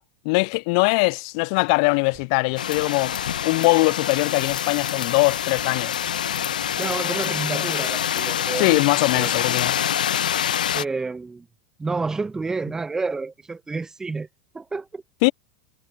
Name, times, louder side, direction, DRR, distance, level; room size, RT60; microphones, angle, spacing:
voice 1, 0.3-3.1 3.4-5.9 8.6-9.7 15.2-15.3, left 31 dB, 55° left, 0.4 m, -21 dB
sound 1, 1.8-4.6 5.1-7.2, right 18 dB, 45° right, 5.2 m, -53 dB
sound 2, 2.6-10.8, left 9 dB, 75° left, 1.2 m, -26 dB
voice 2, 6.8-8.8 9.1-9.3 10.7-11.5 11.8-14.3 14.5-15.0, right 3 dB, 15° right, 1.5 m, -29 dB
figure-of-eight pair, 90°, 4 cm